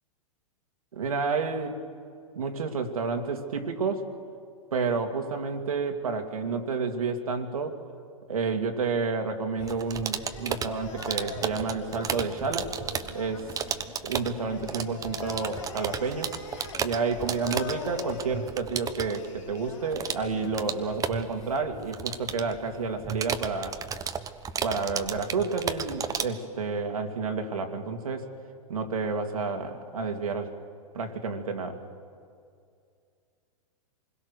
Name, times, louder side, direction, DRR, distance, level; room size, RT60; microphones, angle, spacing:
voice 1, 0.9-1.8 2.3-4.1 4.7-7.8 8.3-12.7 13.1-13.5 14.0-16.4 16.8-23.8 24.6-28.3 28.7-30.6 30.9-31.8, right 4 dB, 75° right, 4 dB, 2.6 m, -30 dB
sound 1, 9.6-21.5, left 6 dB, 60° left, 2.9 m, -43 dB
sound 2, 9.6-26.3, right 7 dB, 20° right, 1.1 m, -34 dB
27.0 x 21.5 x 6.5 m, 2.3 s
hypercardioid pair, 105°, 18 cm